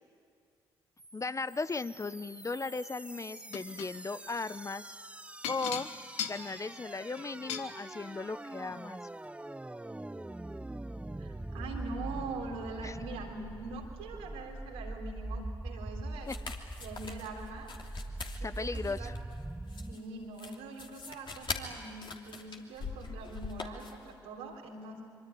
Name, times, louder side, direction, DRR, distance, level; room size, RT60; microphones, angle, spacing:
sound 1, 1.0-20.0, right 1 dB, 10° right, 0.8 m, -43 dB
voice 1, 1.1-4.9 5.5-5.9 6.3-9.0 12.8-13.0 16.3-16.4 18.4-19.2, left 3 dB, 25° left, 15 dB, 0.9 m, -37 dB
sound 2, 3.5-3.9 5.4-7.7 8.7-8.8 9.2-9.3, left 8 dB, 75° left, 1.4 m, -38 dB
voice 2, 11.2-16.3 16.8-17.7 18.4-19.1 19.9-25.0, right 3 dB, 80° right, 0 dB, 3.6 m, -43 dB
sound 3, 16.2-24.1, left 4 dB, 45° left, 3.0 m, -42 dB
25.5 x 23.5 x 9.5 m, 2.3 s
hypercardioid pair, 45°, 11 cm